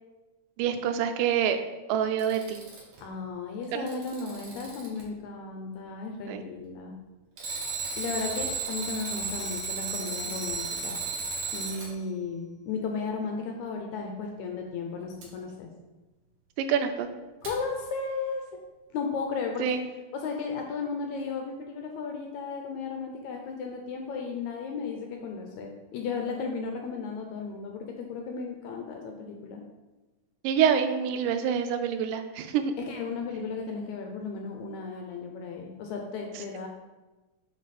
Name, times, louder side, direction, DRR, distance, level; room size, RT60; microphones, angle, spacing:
voice 1, 0.6-1.6 1.9-2.6 3.7-3.9 6.3-6.4 16.6-17.1 19.6-19.8 30.4-32.7, right 8 dB, 90° right, 8 dB, 2.3 m, -26 dB
Alarm, 2.0-3.0 3.6-5.0 7.4-11.9 15.2-15.3 17.4-17.5, right 4 dB, 65° right, 2.7 m, -34 dB
voice 2, 3.0-6.9 7.9-11.0 11.5-15.7 17.4-18.5 18.9-19.8 20.1-29.6 32.9-36.7, left 4 dB, 75° left, 2 dB, 1.8 m, -35 dB
8.5 x 3.7 x 4.1 m, 1.1 s
omnidirectional pair, 3.8 m